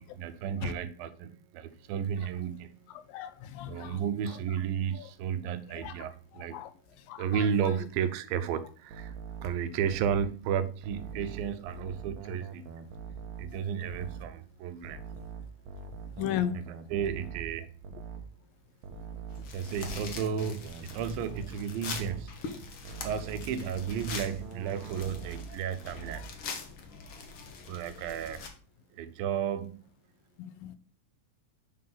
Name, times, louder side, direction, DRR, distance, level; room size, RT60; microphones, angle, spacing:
voice 1, 0.0-2.9 3.7-6.7 7.1-9.2 9.4-12.7 13.4-15.1 16.5-16.6 16.9-17.7 19.5-22.3 23.0-26.3 27.7-28.4 28.9-29.8, right 8 dB, 85° right, 2.5 m, -33 dB
voice 2, 3.1-4.0 5.0-5.1 5.8-5.9 6.5-6.7 7.1-7.5 16.2-16.6 26.2-26.3 30.4-30.8, left 10 dB, 90° left, 2.5 m, -35 dB
sound 1, 8.9-10.4 10.8-13.6 13.8-14.3 14.8-18.4 18.8-21.6 21.8-22.3 22.8-25.6 25.8-26.4, right 5 dB, 70° right, 2.0 m, -43 dB
sound 2, 19.3-28.5, left 4 dB, 70° left, 1.2 m, -43 dB
8.5 x 3.7 x 5.7 m
omnidirectional pair, 4.0 m